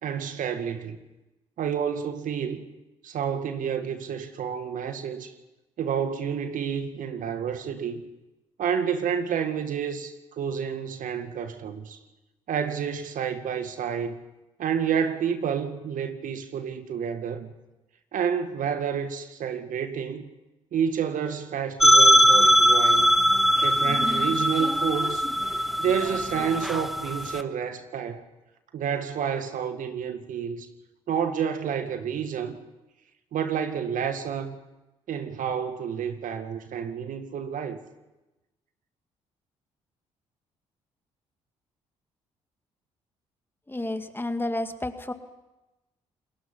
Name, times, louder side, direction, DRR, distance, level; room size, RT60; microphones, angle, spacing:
voice 1, 0.0-1.0 1.6-2.6 3.0-5.3 5.8-8.0 8.6-12.0 12.5-14.2 14.6-17.5 18.1-20.3 20.7-23.1 23.6-25.2 25.8-28.2 28.7-30.7 31.1-32.6 33.3-34.6 35.1-37.8, right 7 dB, 60° right, 2.0 m, -29 dB
sound 1, 21.8-27.4, equal, ahead, 0.9 m, -20 dB
voice 2, 43.7-45.1, left 1 dB, 15° left, 2.2 m, -30 dB
29.0 x 20.5 x 5.6 m
hypercardioid pair, 50°, 15 cm